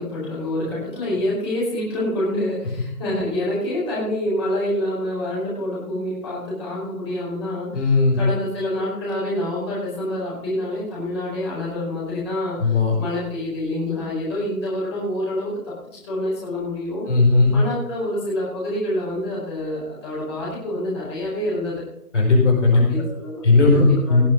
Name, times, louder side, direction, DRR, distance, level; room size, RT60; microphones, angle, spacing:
voice 1, 0.0-17.0 17.5-21.8 22.7-23.4 23.7-24.2, left 1 dB, 15° left, -7 dB, 4.7 m, -27 dB
voice 2, 7.7-8.2 12.6-12.9 17.1-17.5 22.1-22.8 23.4-23.8 24.1-24.2, left 3 dB, 45° left, 0 dB, 4.5 m, -16 dB
19.0 x 7.2 x 5.2 m, 0.82 s
figure-of-eight pair, 170°, 47 cm